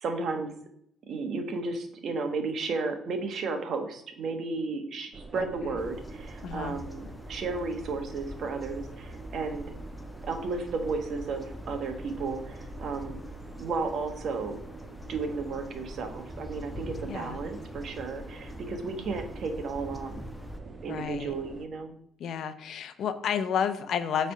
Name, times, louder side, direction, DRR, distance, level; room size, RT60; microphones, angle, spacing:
voice 1, 0.0-0.5 1.1-9.7 10.2-13.2 13.6-14.6 15.1-20.2 20.8-22.0, right 4 dB, 60° right, 6 dB, 1.2 m, -33 dB
sound 1, 5.1-21.7, right 3 dB, 35° right, 0.8 m, -45 dB
sound 2, 5.8-20.6, left 1 dB, 15° left, 0.7 m, -45 dB
voice 2, 6.4-6.8 17.1-17.4 20.9-21.3 22.2-24.3, left 7 dB, 65° left, 10 dB, 0.7 m, -31 dB
7.4 x 3.4 x 5.5 m, 0.71 s
supercardioid pair, 75°, 0 cm